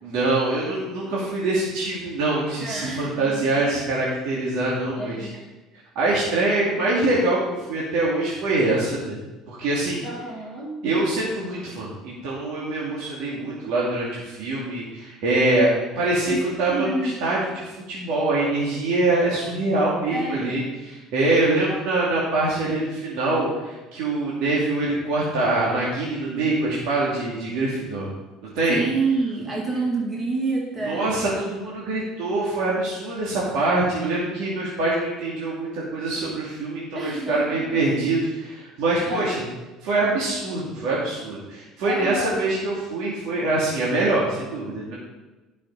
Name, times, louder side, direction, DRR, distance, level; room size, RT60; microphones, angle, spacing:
voice 1, 0.0-5.3 5.9-9.2 9.5-10.1 10.8-28.1 28.4-28.8 30.9-39.4 39.8-44.9, right 2 dB, 75° right, -6 dB, 2.6 m, -24 dB
voice 2, 2.6-3.7 5.0-5.4 10.0-10.7 16.3-17.1 20.1-20.7 21.7-21.8 28.7-31.2 36.9-37.8 39.0-39.4 41.9-42.4, right 3 dB, 15° right, -2 dB, 2.2 m, -28 dB
11.5 x 6.3 x 5.5 m, 1.1 s
cardioid pair, 145°, 0 cm